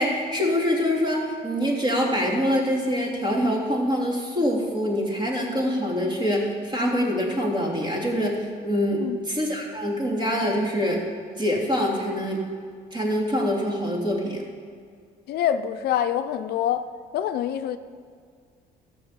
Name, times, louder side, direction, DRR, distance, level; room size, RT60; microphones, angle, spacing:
voice 1, 0.0-11.0 11.4-12.4 12.9-14.4, equal, 30° right, -2 dB, 3.1 m, -25 dB
voice 2, 15.3-16.9 17.1-17.8, left 10 dB, 70° left, 10 dB, 0.6 m, -25 dB
14.0 x 6.1 x 8.2 m, 2.1 s
cardioid pair, 110°, 17 cm